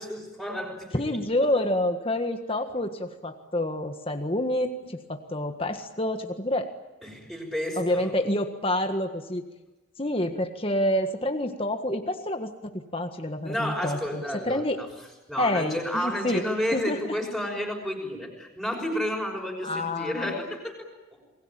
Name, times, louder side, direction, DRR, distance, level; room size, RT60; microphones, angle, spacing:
voice 1, 0.0-1.2 1.5-1.6 7.0-8.1 13.4-14.9 15.3-21.2, equal, ahead, -1 dB, 6.0 m, -31 dB
voice 2, 0.9-6.7 7.8-9.4 10.0-14.8 15.4-16.4 16.7-17.1 19.6-20.4, left 1 dB, 25° left, 6 dB, 1.6 m, -28 dB
29.0 x 21.0 x 8.9 m, 1.1 s
head